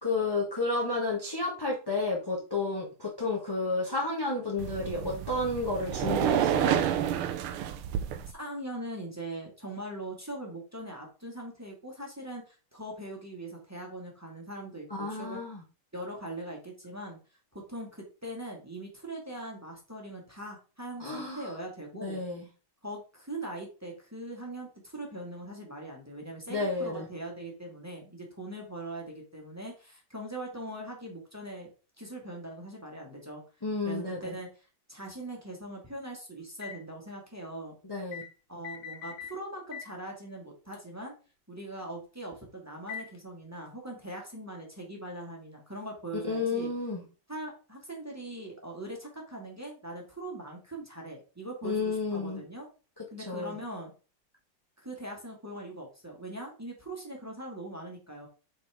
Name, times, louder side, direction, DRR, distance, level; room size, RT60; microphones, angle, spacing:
voice 1, 0.0-6.8 14.9-15.6 21.0-21.5 22.0-22.5 26.5-27.1 33.6-34.3 37.8-38.2 46.3-47.0 51.6-52.4 53.0-53.6, left 3 dB, 20° left, -2 dB, 0.7 m, -31 dB
sound 1, 4.6-8.3, right 9 dB, 85° right, 1.6 m, -29 dB
voice 2, 8.3-15.4 15.9-17.2 17.5-22.2 22.8-31.7 32.0-33.4 33.8-34.5 34.9-37.8 38.5-41.1 41.5-46.7 47.3-52.7 53.1-53.9 54.8-58.3, right 1 dB, 10° right, -1 dB, 1.4 m, -41 dB
sound 2, 36.6-36.8 38.1-38.3 38.6-39.4 39.7-39.9 40.7-40.8 42.9-43.2, left 8 dB, 65° left, 1.7 m, -41 dB
7.7 x 4.0 x 3.4 m, 0.34 s
omnidirectional pair, 2.4 m